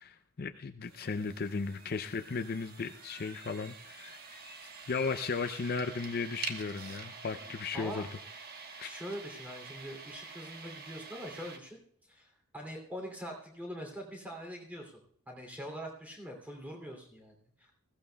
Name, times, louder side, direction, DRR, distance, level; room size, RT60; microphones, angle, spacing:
voice 1, 0.0-4.2 4.6-8.1 8.8-8.9, left 4 dB, 45° left, 8 dB, 0.5 m, -36 dB
sound 1, 0.8-11.6, right 4 dB, 45° right, 1.3 m, -47 dB
voice 2, 7.7-8.1 8.8-11.8 12.1-15.0 15.3-17.7, equal, 5° right, 1 dB, 2.8 m, -43 dB
21.0 x 16.5 x 2.3 m, 0.63 s
head